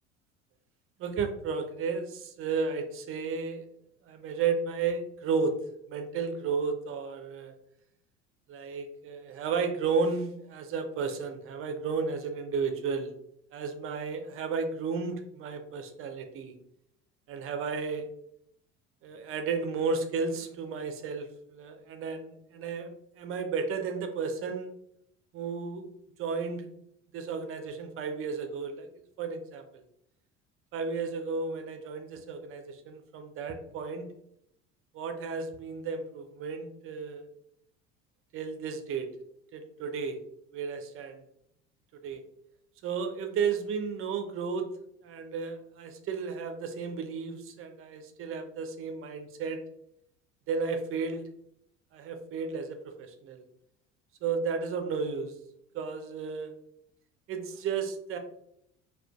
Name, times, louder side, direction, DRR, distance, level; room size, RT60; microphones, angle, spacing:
voice 1, 1.0-3.7 4.0-5.6 5.9-7.5 8.5-13.1 13.5-16.5 17.3-18.1 19.0-24.7 25.3-25.9 26.2-26.7 27.1-28.9 29.2-29.8 30.7-34.1 34.9-37.3 38.3-39.1 39.5-40.2 40.5-41.2 42.0-42.2 42.8-44.7 45.0-49.6 50.5-51.3 51.9-53.4 54.2-55.3 55.7-56.5 57.3-58.2, right 5 dB, 40° right, 7 dB, 0.5 m, -33 dB
2.4 x 2.3 x 2.3 m, 0.73 s
hypercardioid pair, 75°, 35 cm